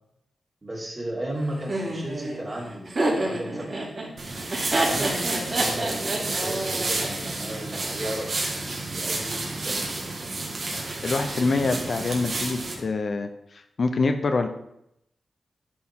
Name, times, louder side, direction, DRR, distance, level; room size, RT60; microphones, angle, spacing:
voice 1, 0.6-3.9 4.7-10.0, right 1 dB, 25° right, -3 dB, 2.7 m, -35 dB
Laughter, 1.7-7.8, right 1 dB, 45° right, 3.0 m, -28 dB
sound 1, 4.2-12.7, right 2 dB, 60° right, 1.9 m, -30 dB
voice 2, 11.0-14.5, left 3 dB, 55° left, 7 dB, 0.6 m, -25 dB
11.5 x 4.3 x 3.7 m, 0.80 s
cardioid pair, 85°, 0 cm